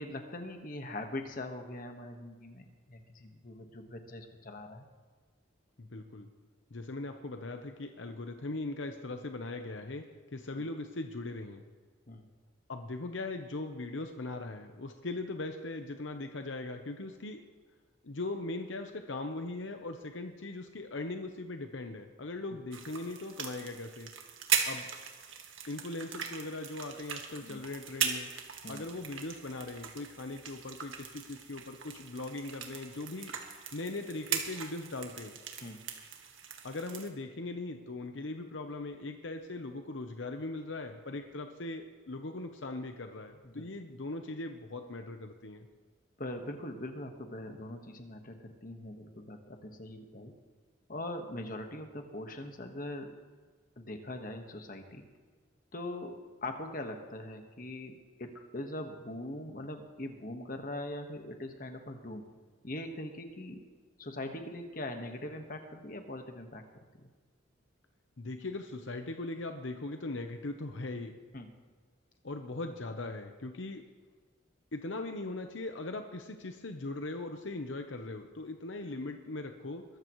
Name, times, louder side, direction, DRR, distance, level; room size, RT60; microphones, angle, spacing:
voice 1, 0.0-4.9 12.1-12.2 27.4-27.6 28.6-28.8 35.6-35.8 43.4-43.6 46.2-50.3 50.9-53.1 53.8-55.0 55.7-62.2 62.6-63.6 64.0-66.6 67.0-67.1 71.3-71.5, left 1 dB, 45° left, 5 dB, 1.4 m, -41 dB
voice 2, 5.8-6.3 6.7-11.6 12.7-17.4 18.0-24.1 24.6-24.9 25.7-28.3 28.7-33.3 33.7-35.4 36.6-45.7 68.2-71.2 72.2-73.8 74.7-79.8, left 2 dB, 70° left, 6 dB, 0.9 m, -40 dB
sound 1, 22.7-37.1, right 7 dB, 85° right, 1.7 m, -39 dB
22.0 x 13.5 x 3.1 m, 1.5 s
head